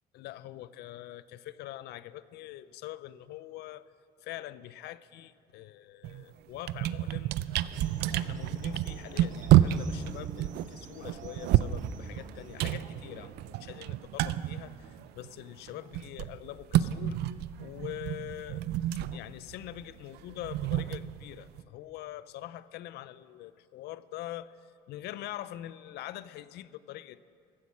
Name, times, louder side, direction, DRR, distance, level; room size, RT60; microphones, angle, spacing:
voice 1, 0.1-3.9 4.2-7.3 8.1-17.2 17.6-18.7 19.1-24.6 24.9-27.2, left 14 dB, 75° left, 17 dB, 0.5 m, -44 dB
sound 1, 6.0-6.2 6.5-15.4 15.7-21.6, right 13 dB, 75° right, 0.4 m, -29 dB
sound 2, 7.7-13.3, right 5 dB, 50° right, 0.9 m, -51 dB
15.0 x 8.3 x 6.3 m, 2.5 s
cardioid pair, 110°, 17 cm